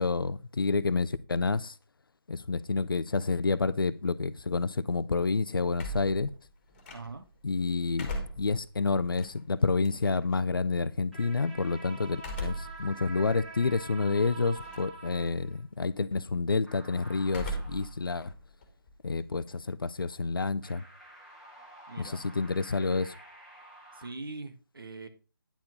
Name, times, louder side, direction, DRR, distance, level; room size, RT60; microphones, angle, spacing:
voice 1, 0.0-1.7 2.3-6.3 7.4-8.1 8.4-18.3 19.0-20.8 22.0-23.1, left 4 dB, 65° left, 0.6 m, -29 dB
sound 1, 5.8-7.4 7.8-10.4 12.1-12.8 13.3-13.4 14.5-15.0 15.3-15.7 17.3-17.9 18.2-19.6, equal, 25° left, 2.0 m, -39 dB
voice 2, 6.9-7.2 21.9-22.2 23.9-25.1, right 3 dB, 65° right, 1.7 m, -42 dB
sound 2, 11.1-15.6 16.7-18.0 20.6-24.1, right 2 dB, ahead, 1.6 m, -48 dB
10.5 x 4.5 x 5.5 m
figure-of-eight pair, 155°, 13 cm